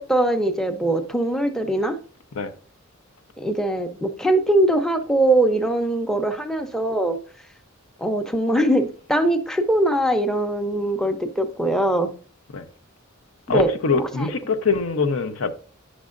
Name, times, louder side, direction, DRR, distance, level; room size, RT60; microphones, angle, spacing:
voice 1, 0.0-2.0 3.4-7.2 8.0-12.1 13.5-14.3, right 1 dB, 5° left, 0.6 m, -22 dB
voice 2, 13.5-15.5, left 4 dB, 85° left, 0.7 m, -23 dB
9.4 x 6.2 x 2.5 m
head